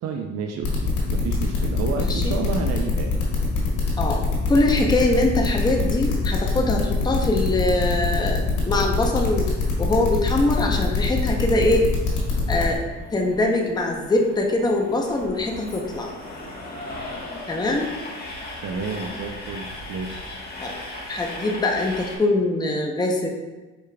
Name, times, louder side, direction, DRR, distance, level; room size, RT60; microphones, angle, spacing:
voice 1, 0.0-3.2 17.2-17.3 18.6-20.2, right 5 dB, 60° right, 2 dB, 0.5 m, -30 dB
sound 1, 0.6-12.8, left 4 dB, 85° left, 1.4 m, -24 dB
voice 2, 4.5-9.5 9.8-11.8 12.5-12.8 13.1-16.1 17.5-17.9 20.6-20.7 21.1-23.3, left 2 dB, 15° left, 1 dB, 0.6 m, -23 dB
Train, 8.9-22.2, left 2 dB, 30° left, 1.3 m, -38 dB
4.9 x 4.8 x 2.2 m, 1.2 s
cardioid pair, 90°, 30 cm